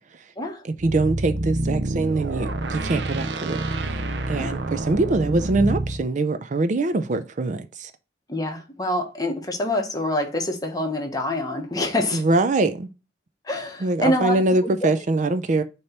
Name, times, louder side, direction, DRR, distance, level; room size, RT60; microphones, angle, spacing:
voice 1, 0.6-4.0 4.3-7.9 12.1-12.9 13.8-15.6, right 2 dB, 45° right, 0.5 m, -23 dB
sound 1, 0.8-6.0, right 2 dB, 80° right, 0.7 m, -27 dB
voice 2, 8.3-12.2 13.4-14.7, left 1 dB, 20° left, 1.2 m, -26 dB
6.3 x 3.0 x 5.8 m
head